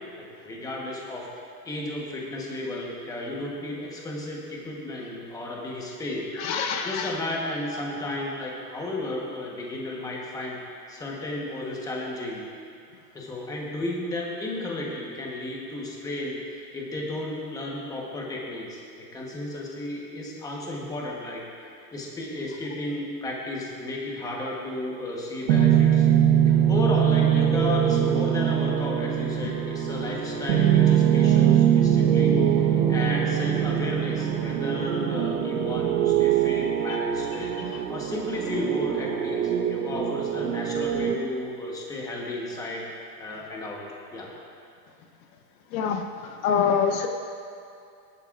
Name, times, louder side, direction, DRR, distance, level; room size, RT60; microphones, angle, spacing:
voice 1, 0.1-1.3 1.6-6.3 6.8-10.6 10.9-12.4 13.1-21.4 21.7-26.1 26.5-42.8 43.2-43.8 44.1-44.3, left 1 dB, 5° left, -2 dB, 1.1 m, -33 dB
voice 2, 6.4-7.2 45.7-46.0 46.4-47.1, left 7 dB, 55° left, 4 dB, 1.0 m, -24 dB
sound 1, 25.5-41.1, right 9 dB, 75° right, 1.1 m, -22 dB
18.5 x 11.5 x 2.5 m, 2.5 s
supercardioid pair, 160°, 50 cm